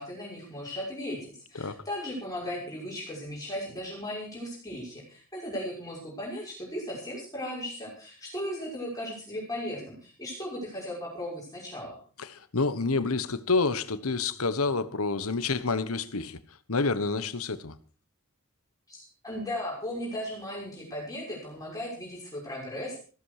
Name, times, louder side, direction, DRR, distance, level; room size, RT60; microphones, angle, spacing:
voice 1, 0.0-12.0 18.9-23.0, left 1 dB, 15° left, 6.0 m, -37 dB
voice 2, 1.5-1.9 12.2-16.4 16.7-17.7, left 3 dB, 75° left, 1.3 m, -28 dB
16.0 x 14.0 x 4.9 m
head